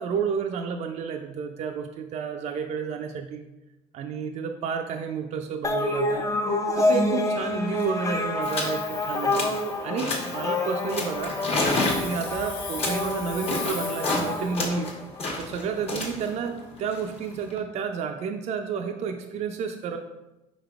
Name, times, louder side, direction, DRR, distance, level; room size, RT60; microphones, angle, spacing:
voice 1, 0.0-3.4 3.9-6.3 6.7-9.5 9.8-11.4 11.9-14.9 15.4-20.0, right 6 dB, 45° right, 4 dB, 0.4 m, -31 dB
sound 1, 5.6-15.4, left 2 dB, 20° left, 0.4 m, -28 dB
sound 2, 7.4-7.5 7.7-8.0 8.4-8.8 9.1-9.6 10.0-10.4 10.9-14.3 14.5-17.6, left 2 dB, 40° left, 1.1 m, -30 dB
Hiss, 8.4-14.7, left 5 dB, 55° left, 0.8 m, -41 dB
5.0 x 4.0 x 2.4 m, 0.98 s
supercardioid pair, 105°, 16 cm